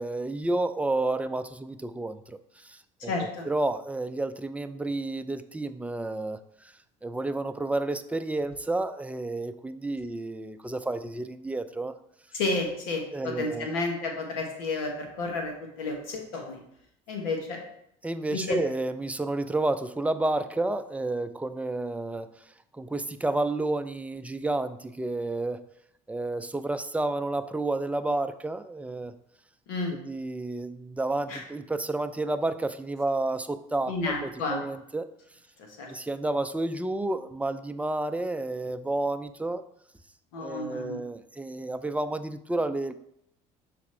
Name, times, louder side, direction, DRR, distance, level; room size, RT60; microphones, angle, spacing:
voice 1, 0.0-3.1 3.5-6.7 7.0-11.9 13.1-13.7 18.0-22.3 22.7-25.6 26.1-29.1 29.9-35.1 35.9-39.6 40.4-42.9, right 2 dB, 10° right, 10 dB, 0.5 m, -30 dB
voice 2, 3.0-3.5 12.3-16.6 17.1-17.6 18.3-18.6 29.7-30.0 31.3-31.4 33.9-34.6 35.6-35.9 40.3-41.0, left 3 dB, 85° left, 2 dB, 1.4 m, -31 dB
6.0 x 4.2 x 4.4 m, 0.73 s
supercardioid pair, 75°, 18 cm